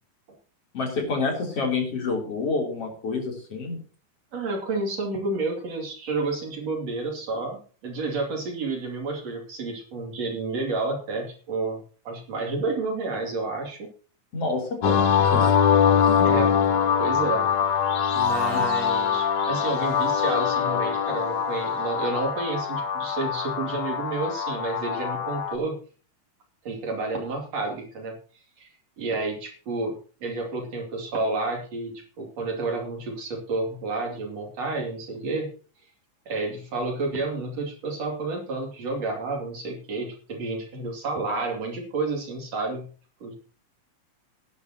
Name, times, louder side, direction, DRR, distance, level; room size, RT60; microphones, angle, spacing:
voice 1, 0.7-3.8 14.3-15.6 16.0-16.3 18.5-18.6, left 3 dB, 45° left, 1 dB, 4.4 m, -28 dB
voice 2, 4.3-13.9 16.2-16.5 17.0-17.5 18.1-25.8 26.7-28.2 28.6-28.7 29.0-30.0 30.2-35.5 36.3-42.9 43.2-43.4, right 3 dB, 55° right, 2 dB, 3.8 m, -30 dB
sound 1, 14.8-25.6, left 7 dB, 80° left, 1.0 m, -23 dB
18.5 x 10.0 x 3.0 m, 0.39 s
omnidirectional pair, 3.7 m